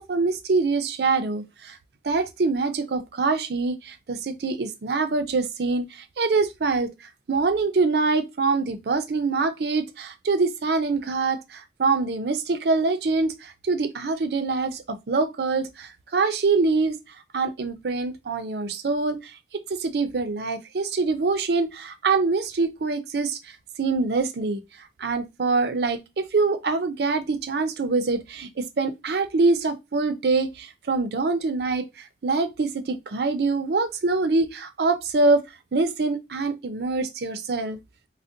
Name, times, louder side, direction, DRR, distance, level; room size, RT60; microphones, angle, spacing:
voice 1, 0.0-1.8 2.0-6.9 7.3-19.3 19.7-37.8, right 3 dB, 65° right, 0.5 m, -25 dB
3.6 x 2.1 x 2.6 m
head